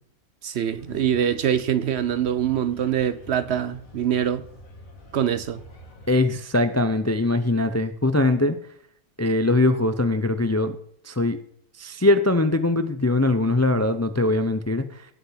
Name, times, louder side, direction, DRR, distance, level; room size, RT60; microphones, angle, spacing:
voice 1, 0.4-4.4 5.1-5.6, right 9 dB, 60° right, 0.8 m, -24 dB
sound 1, 0.6-6.2, left 1 dB, 90° left, 2.7 m, -47 dB
voice 2, 6.1-8.6 9.2-10.8 11.0-11.4 11.8-15.1, left 2 dB, 20° left, 0.4 m, -21 dB
17.5 x 5.9 x 5.8 m
omnidirectional pair, 1.4 m